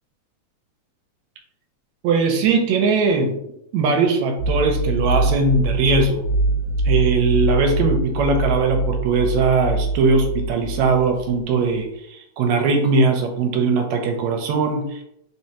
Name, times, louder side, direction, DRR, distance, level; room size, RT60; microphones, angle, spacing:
voice 1, 2.0-3.4 3.7-6.2 6.9-15.0, right 4 dB, 80° right, 4 dB, 1.8 m, -20 dB
sound 1, 4.4-11.5, right 1 dB, 25° right, 1.3 m, -23 dB
4.6 x 3.3 x 2.8 m, 0.78 s
omnidirectional pair, 3.3 m